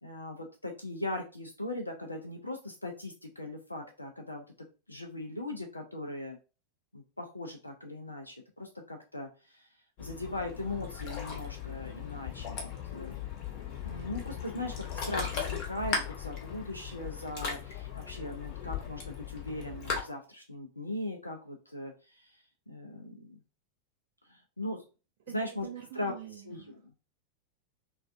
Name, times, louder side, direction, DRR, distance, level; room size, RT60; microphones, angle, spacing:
voice 1, 0.0-4.4 4.9-6.4 6.9-9.7 10.0-13.1 13.8-23.4 24.2-24.8 25.3-25.7 25.9-26.1 26.4-26.8, left 1 dB, 85° left, 3 dB, 0.4 m, -39 dB
Ocean, 10.0-20.0, left 6 dB, 45° left, 0.9 m, -38 dB
voice 2, 25.6-27.0, right 11 dB, 55° right, 2 dB, 0.5 m, -46 dB
3.2 x 2.3 x 2.4 m, 0.33 s
figure-of-eight pair, 90°, 0 cm